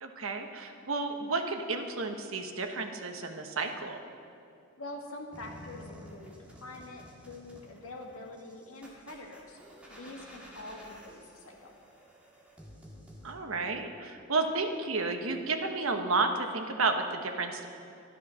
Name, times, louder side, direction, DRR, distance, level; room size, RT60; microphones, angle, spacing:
voice 1, 0.0-4.0 13.2-17.7, right 3 dB, 80° right, 5 dB, 1.2 m, -32 dB
voice 2, 4.8-9.6 9.9-11.7, left 2 dB, 85° left, 1 dB, 2.0 m, -45 dB
sound 1, 5.3-13.3, equal, 5° right, 1.8 m, -51 dB
12.0 x 11.5 x 6.3 m, 2.6 s
head